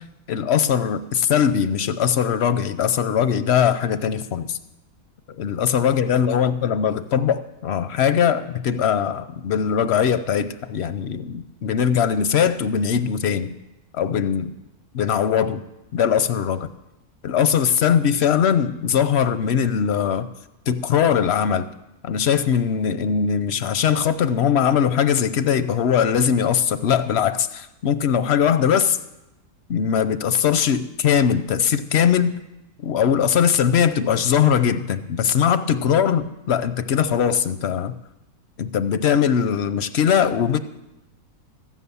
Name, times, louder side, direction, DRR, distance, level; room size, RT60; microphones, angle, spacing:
voice 1, 0.3-4.6 5.4-13.5 13.9-14.5 14.9-15.6 15.9-16.7 17.2-20.3 20.7-21.7 22.0-29.0 29.7-32.3 32.8-37.9 38.6-40.6, left 8 dB, 60° left, 12 dB, 0.7 m, -20 dB
14.0 x 9.3 x 6.9 m, 0.94 s
omnidirectional pair, 1.6 m